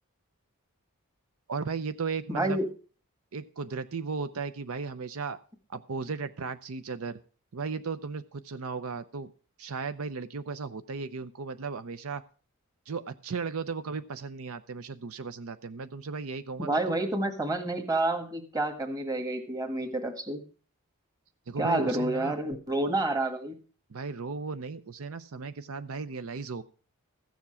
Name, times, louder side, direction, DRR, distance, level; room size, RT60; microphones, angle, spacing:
voice 1, 1.5-2.6 3.3-5.4 5.7-7.2 7.5-9.3 9.6-12.2 12.9-17.0 21.5-22.3 23.9-26.6, right 4 dB, 65° right, 11 dB, 0.6 m, -36 dB
voice 2, 2.3-2.7 16.6-20.4 21.6-23.6, right 2 dB, 15° right, 7 dB, 1.5 m, -29 dB
14.5 x 7.2 x 5.6 m, 0.40 s
head